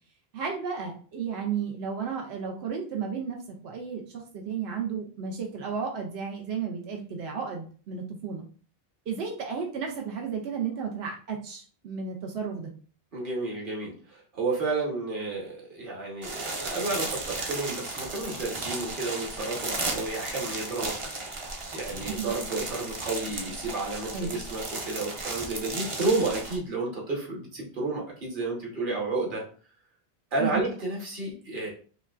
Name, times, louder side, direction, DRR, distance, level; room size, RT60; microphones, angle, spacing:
voice 1, 0.3-3.4 3.6-8.4 9.1-12.7 22.1-22.3 24.1-24.4 30.4-30.7, right 6 dB, 90° right, 1 dB, 0.9 m, -33 dB
voice 2, 13.1-21.0 21.7-29.4 30.3-31.7, right 3 dB, 55° right, -2 dB, 1.3 m, -31 dB
sound 1, 16.2-26.6, right 2 dB, 40° right, 0.6 m, -35 dB
5.2 x 2.2 x 2.4 m, 0.41 s
omnidirectional pair, 1.0 m